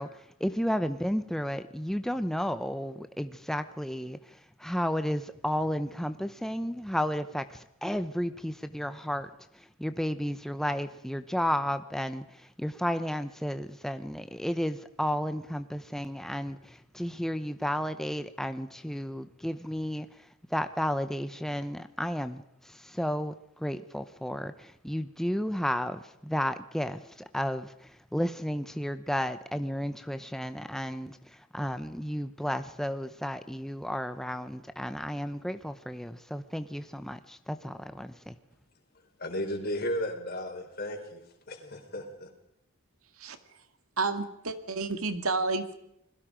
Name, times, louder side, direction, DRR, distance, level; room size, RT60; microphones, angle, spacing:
voice 1, 0.0-38.4, equal, ahead, 10 dB, 0.7 m, -33 dB
voice 2, 38.9-42.3, left 1 dB, 45° left, 3 dB, 4.4 m, -35 dB
voice 3, 44.0-45.7, right 3 dB, 80° right, 8 dB, 2.2 m, -30 dB
29.0 x 21.0 x 5.1 m, 0.78 s
head